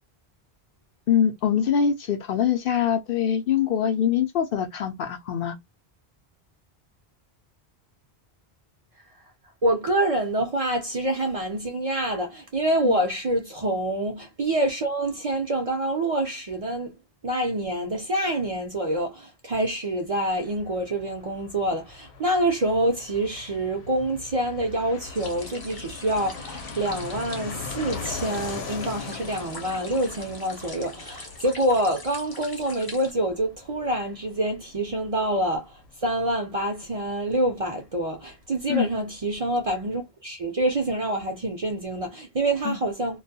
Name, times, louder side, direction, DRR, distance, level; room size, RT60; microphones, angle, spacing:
voice 1, 1.1-5.6 12.8-13.0 38.7-38.9 42.6-42.8, left 8 dB, 65° left, 0.7 m, -24 dB
voice 2, 9.6-16.9 17.2-43.2, right 1 dB, 45° right, 0.5 m, -26 dB
Fixed-wing aircraft airplane, 20.3-38.7 38.9-39.0 39.2-39.9, left 4 dB, 85° left, 0.9 m, -41 dB
sound 1, 25.1-33.1, left 2 dB, 30° left, 0.5 m, -43 dB
2.3 x 2.1 x 2.6 m
omnidirectional pair, 1.1 m